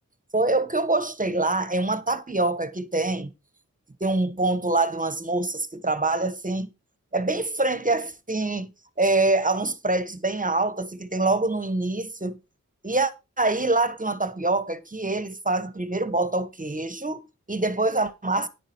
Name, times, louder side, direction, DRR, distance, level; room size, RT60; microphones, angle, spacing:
voice 1, 0.3-3.3 4.0-6.7 7.1-8.7 9.0-12.4 12.8-13.1 13.4-18.5, right 2 dB, 25° right, 1.1 m, -25 dB
10.5 x 7.5 x 4.4 m
wide cardioid pair, 75°, 30 cm